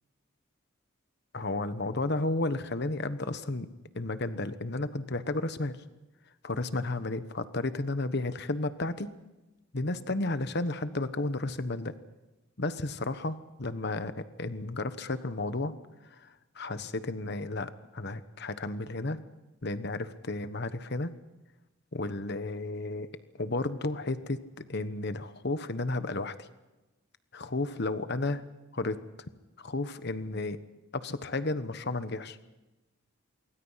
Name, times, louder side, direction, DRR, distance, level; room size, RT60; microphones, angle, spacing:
voice 1, 1.3-3.7 3.9-5.8 6.4-9.1 9.7-11.9 12.6-15.7 16.2-16.3 16.5-19.2 19.6-21.1 21.9-23.1 23.4-26.5 27.3-28.4 28.7-29.0 29.6-30.6 30.9-32.4, left 2 dB, 50° left, 12 dB, 1.2 m, -32 dB
27.0 x 23.5 x 5.8 m, 1.1 s
head